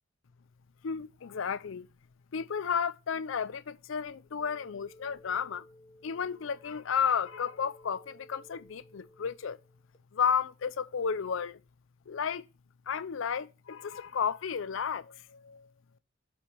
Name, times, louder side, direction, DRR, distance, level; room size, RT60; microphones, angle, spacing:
voice 1, 0.8-1.9 2.3-5.6 6.0-9.6 10.1-11.6 12.1-12.4 12.9-15.7, left 7 dB, 70° left, 0.5 m, -32 dB
sound 1, 4.4-10.0, left 1 dB, 35° left, 1.1 m, -58 dB
7.6 x 4.3 x 5.3 m
head